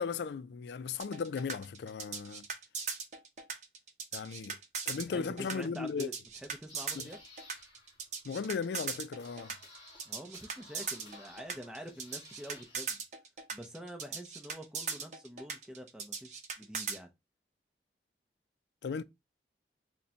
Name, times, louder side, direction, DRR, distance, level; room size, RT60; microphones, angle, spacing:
voice 1, 0.0-2.5 4.1-4.6 4.9-6.1 7.0-7.1 8.2-9.6 18.8-19.0, left 5 dB, 75° left, 0.4 m, -36 dB
sound 1, 1.0-17.0, right 5 dB, 40° right, 0.7 m, -39 dB
voice 2, 4.9-6.1 6.4-7.2 10.1-13.0 13.5-17.1, equal, 5° right, 0.6 m, -46 dB
sound 2, 6.3-12.8, left 2 dB, 30° left, 2.0 m, -57 dB
6.4 x 2.2 x 2.8 m
head